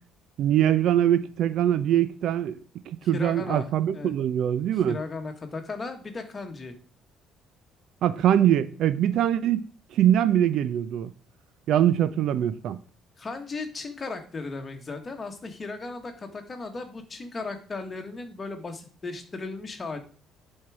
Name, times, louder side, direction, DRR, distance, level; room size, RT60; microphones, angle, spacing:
voice 1, 0.4-2.6 2.9-5.0 8.0-9.6 9.9-11.1 11.7-12.8, right 11 dB, 60° right, 0.5 m, -23 dB
voice 2, 3.0-4.1 4.9-6.7 13.2-20.0, left 3 dB, 25° left, 1.4 m, -36 dB
10.5 x 4.6 x 4.8 m
cardioid pair, 135°, 0 cm